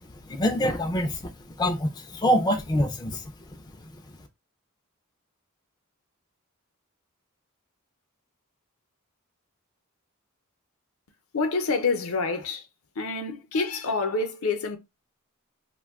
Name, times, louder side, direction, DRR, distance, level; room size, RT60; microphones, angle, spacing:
voice 1, 0.3-1.3 1.6-3.2, equal, 20° left, 0.4 m, -25 dB
voice 2, 11.3-12.7 13.0-14.8, left 3 dB, 70° left, 0.6 m, -27 dB
2.6 x 2.2 x 3.5 m
head